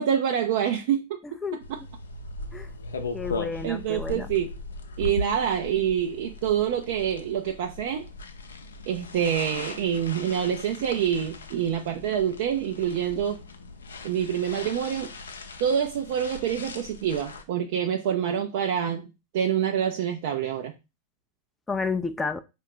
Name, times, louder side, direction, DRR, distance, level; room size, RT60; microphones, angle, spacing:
voice 1, 0.0-1.4 1.7-1.8 3.6-4.5 5.0-8.0 8.9-13.4 14.0-15.1 15.6-19.1 19.3-20.7, right 9 dB, 50° right, 0.5 m, -26 dB
sound 1, 1.6-17.4, left 3 dB, 70° left, 0.6 m, -39 dB
voice 2, 3.1-4.3 21.7-22.4, left 4 dB, 10° left, 0.3 m, -30 dB
4.4 x 2.4 x 3.8 m
figure-of-eight pair, 90°, 0 cm